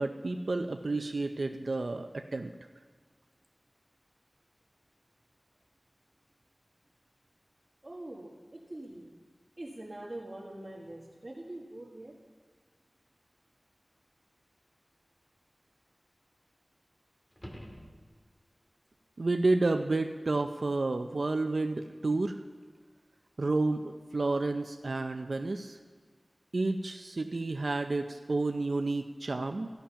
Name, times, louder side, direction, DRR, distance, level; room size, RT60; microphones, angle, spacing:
voice 1, 0.0-2.5 19.2-22.4 23.4-25.8 26.5-29.7, right 2 dB, 85° right, 6 dB, 0.5 m, -30 dB
voice 2, 7.8-9.1 9.6-12.1 25.4-25.6, right 1 dB, 45° right, -5 dB, 1.7 m, -44 dB
sound 1, 17.3-18.5 23.4-23.5, equal, 20° left, 1.9 m, -48 dB
14.0 x 10.0 x 5.7 m, 1.5 s
wide cardioid pair, 55°, 0 cm